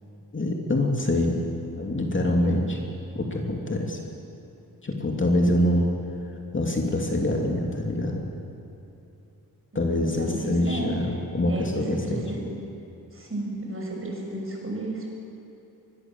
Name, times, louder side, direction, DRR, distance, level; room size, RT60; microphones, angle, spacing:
voice 1, 0.3-1.4 1.7-2.8 3.1-4.0 4.8-5.9 6.5-8.2 9.7-12.2, left 1 dB, 30° left, 0 dB, 2.8 m, -25 dB
voice 2, 9.7-10.9 11.4-12.4 13.1-15.2, right 1 dB, 35° right, -1 dB, 6.5 m, -33 dB
25.5 x 21.5 x 7.5 m, 2.8 s
wide cardioid pair, 120°, 37 cm